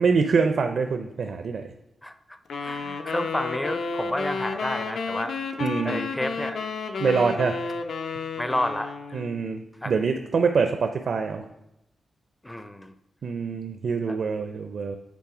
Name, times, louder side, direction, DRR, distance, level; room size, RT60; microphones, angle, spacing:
voice 1, 0.0-1.7 2.7-2.8 5.6-6.1 7.0-7.6 9.1-11.4 13.2-15.0, right 5 dB, 60° right, 6 dB, 0.5 m, -25 dB
voice 2, 2.0-5.3 5.8-6.7 7.0-7.3 8.4-9.2 9.8-9.9 12.4-12.9 14.1-14.2, left 1 dB, 10° left, 9 dB, 0.5 m, -31 dB
sound 1, 2.5-9.5, left 4 dB, 65° left, 0.6 m, -32 dB
8.4 x 3.6 x 4.9 m, 0.87 s
wide cardioid pair, 135°, 0 cm